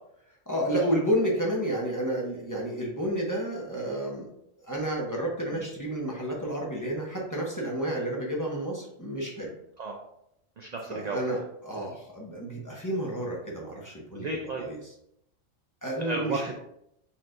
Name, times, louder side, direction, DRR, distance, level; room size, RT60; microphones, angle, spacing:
voice 1, 0.5-4.3 4.6-9.5 10.9-14.3 14.6-14.8 15.8-16.4, right 1 dB, 15° left, -3 dB, 0.8 m, -30 dB
voice 2, 10.6-11.4 11.8-11.9 14.1-14.7 16.0-16.5, right 2 dB, 60° right, 1 dB, 0.4 m, -34 dB
4.4 x 4.3 x 2.6 m, 0.77 s
omnidirectional pair, 1.3 m